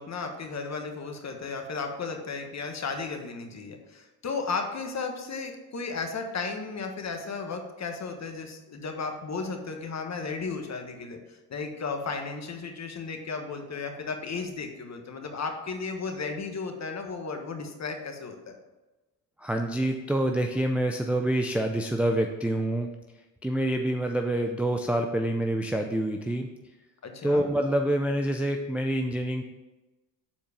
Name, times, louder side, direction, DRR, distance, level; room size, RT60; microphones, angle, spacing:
voice 1, 0.0-18.6 27.0-27.5, left 4 dB, 35° left, 5 dB, 1.4 m, -34 dB
voice 2, 19.4-22.9 23.4-26.5 27.2-29.4, right 1 dB, 5° right, 3 dB, 0.5 m, -27 dB
7.3 x 4.6 x 5.1 m, 1.1 s
supercardioid pair, 75°, 49 cm